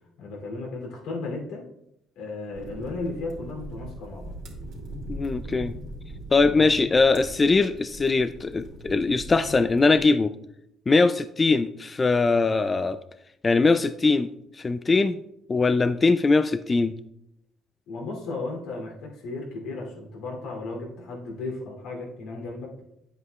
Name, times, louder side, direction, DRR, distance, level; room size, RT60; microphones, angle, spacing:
voice 1, 0.2-1.7 2.1-4.3 6.4-6.7 9.1-9.5 17.9-22.7, left 3 dB, 85° left, 0 dB, 2.8 m, -35 dB
sound 1, 2.5-10.1, right 1 dB, 65° right, 2.3 m, -40 dB
voice 2, 5.1-5.7 6.3-10.3 10.9-13.0 13.4-14.3 14.6-15.2 15.5-16.9, left 3 dB, 25° left, 11 dB, 0.3 m, -21 dB
9.7 x 8.0 x 2.3 m, 0.79 s
cardioid pair, 120°, 0 cm